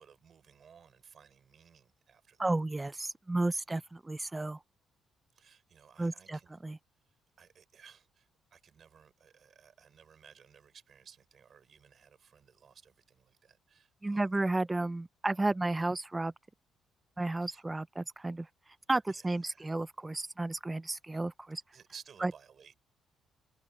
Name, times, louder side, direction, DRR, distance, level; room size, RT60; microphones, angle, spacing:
voice 1, 0.0-2.5 5.3-6.6 7.4-14.2 17.4-17.6 19.1-19.7 21.5-22.7, right 7 dB, 50° right, 5.4 m, -58 dB
voice 2, 2.4-4.6 6.0-6.8 14.0-16.3 17.2-18.5 18.9-21.6 22.2-22.3, right 2 dB, 15° right, 0.7 m, -32 dB
cardioid pair, 90°, 0 cm